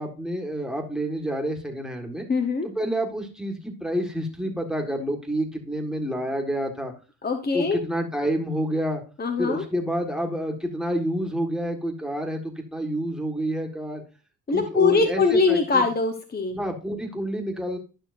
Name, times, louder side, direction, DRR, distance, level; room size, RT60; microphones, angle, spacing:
voice 1, 0.0-2.3 2.6-6.9 7.5-9.0 9.4-14.0 14.5-15.9 16.5-17.8, equal, ahead, 2 dB, 1.6 m, -28 dB
voice 2, 2.3-2.7 7.2-7.8 9.2-9.6 14.5-16.6, left 4 dB, 25° left, 6 dB, 0.9 m, -22 dB
12.0 x 5.8 x 2.6 m, 0.34 s
cardioid pair, 115°, 40 cm